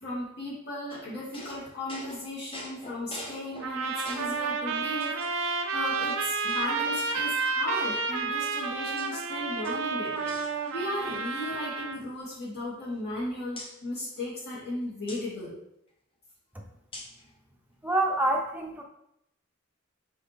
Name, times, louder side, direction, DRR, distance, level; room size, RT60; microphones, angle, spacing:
voice 1, 0.0-10.2 10.6-15.6, left 1 dB, 55° left, -7 dB, 2.4 m, -36 dB
sound 1, 0.9-4.5 5.0-5.6 6.0-6.1 6.5-7.5 8.3-9.2 9.5-11.1 11.4-11.6 11.9-13.2 13.6-13.8 15.1-15.3 16.9-17.3, left 1 dB, 25° left, 0.9 m, -45 dB
sound 2, 3.6-12.0, right 4 dB, 75° right, 0.6 m, -30 dB
voice 2, 17.8-18.8, right 2 dB, 10° right, 1 dB, 0.8 m, -26 dB
6.1 x 4.5 x 3.5 m, 0.76 s
head